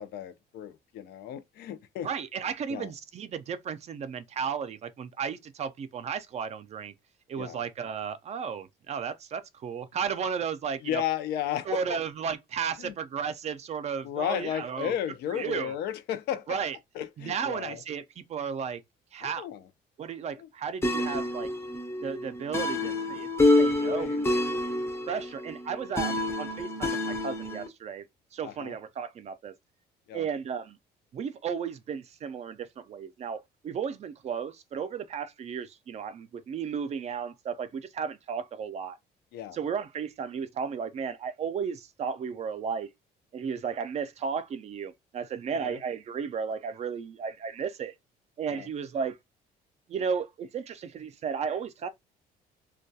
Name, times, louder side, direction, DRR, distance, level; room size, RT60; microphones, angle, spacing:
voice 1, 0.0-2.1 2.7-2.9 7.4-7.6 10.8-11.8 12.8-12.9 14.0-16.6 16.9-17.8 19.2-19.6 20.3-20.5 23.8-24.2 28.4-28.7 30.1-30.3 39.3-39.6 45.5-45.8 48.5-48.7, left 10 dB, 75° left, 0.5 m, -34 dB
voice 2, 2.0-6.9 7.3-11.0 11.7-14.9 15.3-15.8 16.5-16.8 17.2-18.8 19.1-19.4 20.0-21.5 22.0-23.3 23.6-24.4 25.1-28.0 28.3-29.5 30.1-30.8 31.1-39.0 39.5-42.9 43.3-47.9 48.4-49.2 49.9-51.9, right 6 dB, 40° right, 0.4 m, -34 dB
sound 1, 20.8-27.7, left 2 dB, 15° left, 0.5 m, -28 dB
2.3 x 2.2 x 2.6 m
cardioid pair, 110°, 17 cm